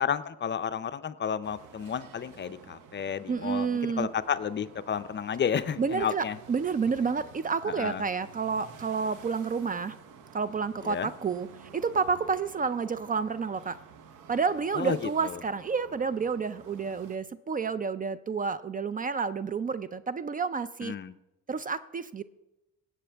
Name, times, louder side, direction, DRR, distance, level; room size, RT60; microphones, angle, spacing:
voice 1, 0.0-6.4 7.7-8.0 10.8-11.1 14.7-15.0 15.2-15.4 20.8-21.1, left 7 dB, 40° left, 12 dB, 0.5 m, -31 dB
sound 1, 1.4-17.2, right 7 dB, 85° right, 0.9 m, -51 dB
voice 2, 3.3-4.1 5.8-10.0 10.3-11.5 11.7-13.8 14.3-20.9 21.5-22.2, right 5 dB, 30° right, 15 dB, 0.4 m, -30 dB
17.0 x 7.4 x 3.4 m, 0.95 s
cardioid pair, 90°, 30 cm